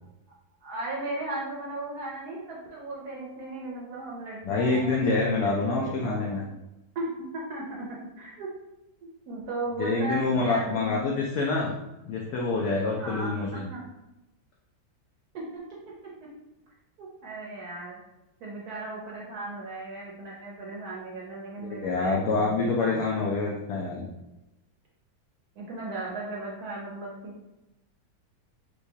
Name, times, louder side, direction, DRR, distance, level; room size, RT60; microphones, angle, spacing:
voice 1, 0.6-6.5 6.9-8.5 9.3-11.1 12.9-13.8 15.3-15.6 17.0-18.0 18.4-23.1 25.6-27.5, right 2 dB, 65° right, -4 dB, 1.0 m, -36 dB
voice 2, 4.4-6.4 9.8-11.7 12.1-13.7 21.7-24.1, left 3 dB, 75° left, -2 dB, 0.9 m, -26 dB
4.6 x 2.2 x 2.7 m, 0.95 s
omnidirectional pair, 2.1 m